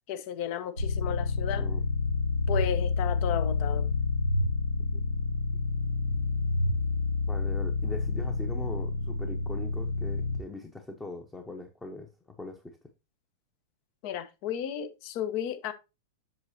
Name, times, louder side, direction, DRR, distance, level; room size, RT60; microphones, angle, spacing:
voice 1, 0.1-1.6 2.5-3.9 14.0-15.7, left 9 dB, 50° left, 0.9 m, -33 dB
sound 1, 0.8-10.4, left 3 dB, 85° left, 0.8 m, -28 dB
voice 2, 7.3-12.8, left 2 dB, 10° left, 1.0 m, -41 dB
7.7 x 6.4 x 2.8 m
figure-of-eight pair, 95°, 0 cm